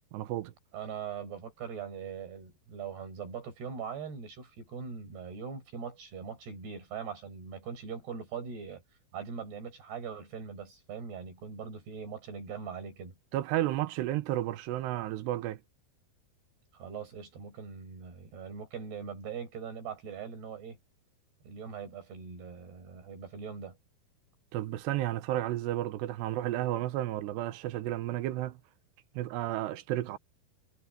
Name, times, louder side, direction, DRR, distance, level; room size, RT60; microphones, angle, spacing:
voice 1, 0.1-0.5 13.3-15.6 24.5-28.6 29.2-30.2, right 14 dB, 85° right, 3.2 m, -32 dB
voice 2, 0.7-8.8 9.1-13.2 16.7-20.8 21.4-23.8, right 6 dB, 70° right, 7.2 m, -41 dB
omnidirectional pair, 4.8 m